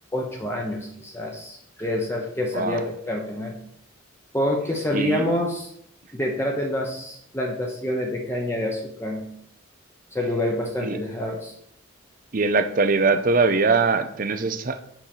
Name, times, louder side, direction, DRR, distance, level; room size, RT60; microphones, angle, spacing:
voice 1, 0.1-3.6 4.3-5.7 6.1-9.3 10.1-11.5, left 1 dB, 10° left, 0 dB, 0.9 m, -27 dB
voice 2, 4.9-5.3 10.8-11.0 12.3-14.8, right 4 dB, 40° right, 9 dB, 0.6 m, -22 dB
6.1 x 5.6 x 6.6 m, 0.71 s
head